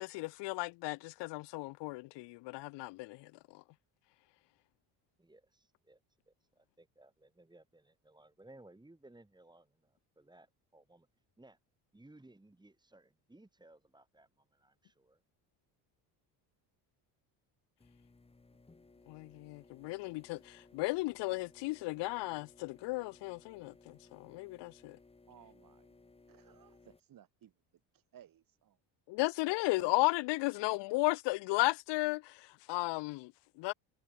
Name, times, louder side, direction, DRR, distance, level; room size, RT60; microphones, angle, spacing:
voice 1, 0.0-3.6 19.1-25.0 29.1-33.7, left 23 dB, 70° left, 0.6 m, -35 dB
voice 2, 5.2-6.0 6.3-11.1 11.4-11.6 11.9-15.2, right 2 dB, 10° right, 4.8 m, -60 dB
sound 1, 17.8-27.0, left 3 dB, 15° left, 1.4 m, -62 dB
voice 3, 25.3-25.9 26.3-27.5 27.9-28.8 29.8-30.0, right 10 dB, 50° right, 2.1 m, -59 dB
cardioid pair, 95°, 44 cm